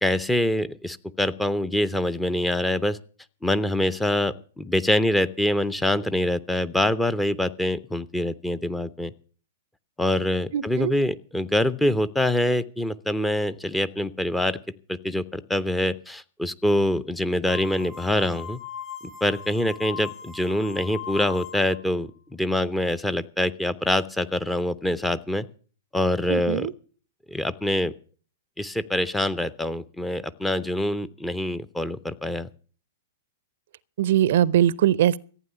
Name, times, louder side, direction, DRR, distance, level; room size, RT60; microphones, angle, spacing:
voice 1, 0.0-3.0 3.4-9.1 10.0-14.6 14.9-18.6 19.2-25.5 25.9-26.7 27.3-27.9 28.6-32.5, left 1 dB, 5° left, 0.6 m, -25 dB
voice 2, 10.5-10.9 26.3-26.7 34.0-35.2, right 11 dB, 60° right, 0.5 m, -21 dB
sound 1, 17.5-21.9, left 8 dB, 35° left, 4.9 m, -39 dB
15.0 x 9.0 x 6.8 m
figure-of-eight pair, 105°, 0 cm